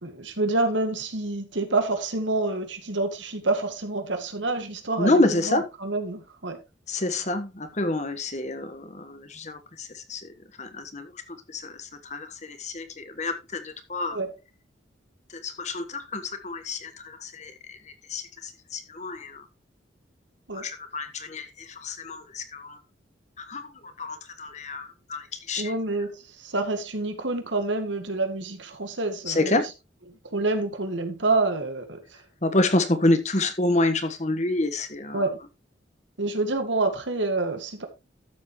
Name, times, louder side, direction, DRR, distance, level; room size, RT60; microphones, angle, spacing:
voice 1, 0.0-6.6 14.1-14.3 20.5-20.6 25.6-29.6 30.3-32.0 35.1-35.4 36.2-37.9, right 2 dB, 80° right, 2.0 m, -27 dB
voice 2, 5.0-5.7 6.9-11.1 11.5-14.2 15.3-17.8 18.1-19.5 20.5-22.8 23.4-25.7 29.3-29.7 32.4-35.2, left 2 dB, 40° left, 1.4 m, -28 dB
13.0 x 7.3 x 3.1 m
head